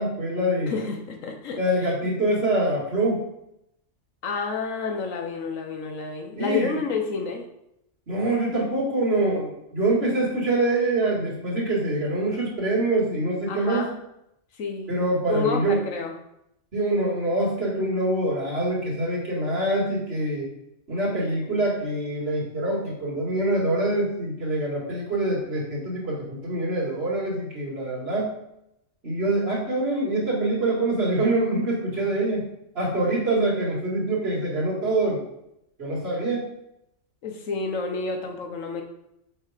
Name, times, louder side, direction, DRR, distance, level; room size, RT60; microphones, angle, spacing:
voice 1, 0.0-0.8 1.6-3.3 6.4-6.7 8.1-13.9 14.9-15.8 16.7-20.5 20.9-28.3 29.0-32.4 32.7-35.2 35.8-36.5, right 2 dB, 50° right, -5 dB, 2.2 m, -25 dB
voice 2, 0.7-1.9 4.2-7.4 13.5-14.0 14.6-14.9 15.3-16.1 32.0-32.1 37.2-38.8, left 4 dB, 75° left, 4 dB, 1.3 m, -29 dB
6.7 x 3.4 x 4.9 m, 0.81 s
omnidirectional pair, 1.4 m